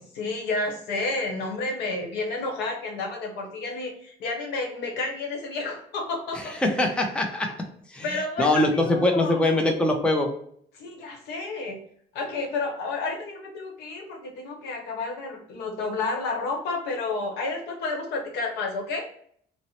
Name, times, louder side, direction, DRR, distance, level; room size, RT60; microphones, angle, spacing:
voice 1, 0.2-6.5 6.8-6.9 8.0-9.7 10.7-11.8 12.1-19.0, left 3 dB, 80° left, 2 dB, 0.9 m, -31 dB
voice 2, 6.3-7.5 7.9-10.3, left 1 dB, 5° left, 2 dB, 0.5 m, -23 dB
2.8 x 2.0 x 4.0 m, 0.62 s
cardioid pair, 110°, 17 cm